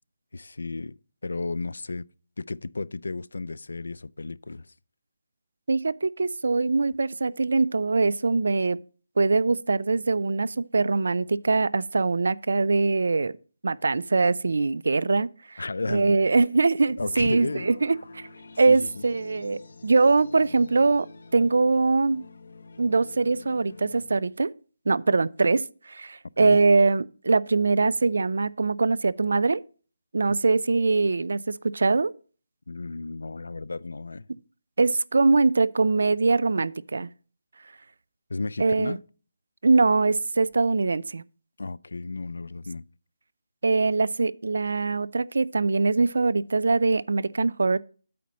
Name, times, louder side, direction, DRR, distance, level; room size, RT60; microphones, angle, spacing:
voice 1, 0.3-2.1 2.4-4.7 15.6-16.2 17.0-17.7 18.7-18.9 26.4-26.6 30.2-30.3 32.7-34.3 38.3-39.0 41.6-42.8, left 3 dB, 85° left, 0.3 m, -33 dB
voice 2, 5.7-8.8 9.2-13.4 13.6-15.6 15.9-18.2 18.6-21.1 21.3-22.2 22.8-24.5 24.9-29.6 30.1-32.1 34.8-37.1 38.6-39.0 39.6-41.2 43.6-47.8, right 3 dB, 65° right, 0.4 m, -22 dB
sound 1, 17.1-24.2, left 3 dB, 50° left, 0.9 m, -47 dB
8.5 x 4.1 x 6.3 m
hypercardioid pair, 180°, 0 cm